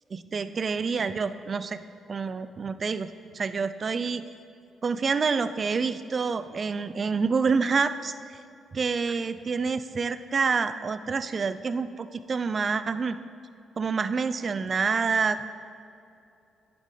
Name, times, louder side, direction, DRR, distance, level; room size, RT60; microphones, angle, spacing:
voice 1, 0.1-1.8 2.1-4.2 4.8-8.1 8.7-13.2 13.8-15.5, right 5 dB, 40° right, 12 dB, 0.5 m, -27 dB
11.5 x 10.5 x 3.9 m, 2.6 s
cardioid pair, 90°, 0 cm